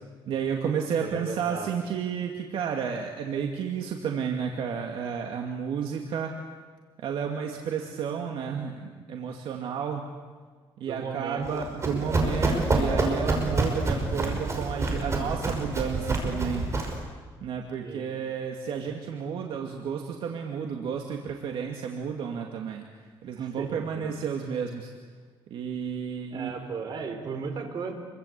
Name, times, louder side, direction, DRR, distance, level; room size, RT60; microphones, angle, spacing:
voice 1, 0.3-6.4 7.0-10.0 10.8-16.7 17.4-22.9 23.2-24.9 25.5-26.5, right 7 dB, 70° right, 2 dB, 2.4 m, -31 dB
voice 2, 1.0-1.7 10.8-11.6 12.0-12.2 17.8-18.0 23.4-24.1 26.3-27.9, right 5 dB, 50° right, 5 dB, 4.9 m, -36 dB
Run, 11.4-17.0, right 2 dB, 30° right, 5.8 m, -27 dB
28.5 x 23.5 x 8.4 m, 1.5 s
cardioid pair, 125°, 9 cm